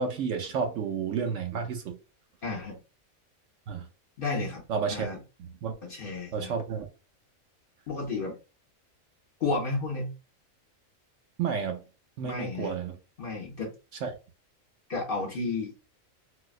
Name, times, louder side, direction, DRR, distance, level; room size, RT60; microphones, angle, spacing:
voice 1, 0.0-1.9 3.7-3.8 4.7-5.1 5.6-5.7 6.3-6.9 11.4-11.8 12.2-12.9 14.0-14.1, right 6 dB, 70° right, 0.8 m, -30 dB
voice 2, 2.4-2.8 4.2-4.6 4.9-5.2 5.8-6.5 7.9-8.4 9.4-10.1 12.2-12.7 13.2-13.7 14.9-15.7, left 3 dB, 50° left, 0.7 m, -32 dB
4.0 x 2.1 x 2.4 m
omnidirectional pair, 1.5 m